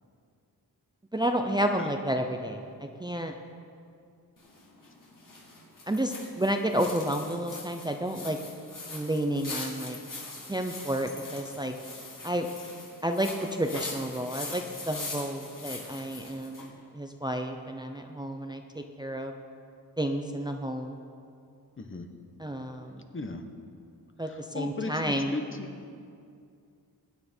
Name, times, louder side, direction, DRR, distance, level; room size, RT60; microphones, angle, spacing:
voice 1, 1.1-3.3 5.9-8.4 8.9-10.0 10.5-11.7 12.2-12.5 13.0-18.6 19.0-19.3 20.0-21.0 22.4-23.0 24.2-25.4, right 1 dB, 10° right, 4 dB, 0.6 m, -31 dB
sound 1, 4.4-16.7, left 3 dB, 55° left, 3.0 m, -42 dB
voice 2, 21.8-22.1 23.1-23.4 24.2-25.7, left 3 dB, 35° left, 6 dB, 1.1 m, -36 dB
20.5 x 9.6 x 4.4 m, 2.4 s
wide cardioid pair, 120°, 37 cm